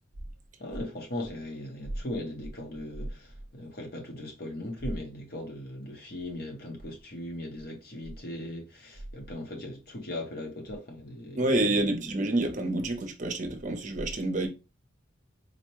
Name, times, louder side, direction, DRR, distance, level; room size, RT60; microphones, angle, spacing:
voice 1, 0.6-12.0, left 1 dB, 50° left, 0.8 m, -39 dB
voice 2, 11.4-14.5, right 2 dB, 40° right, 0.6 m, -28 dB
4.0 x 2.1 x 3.0 m
head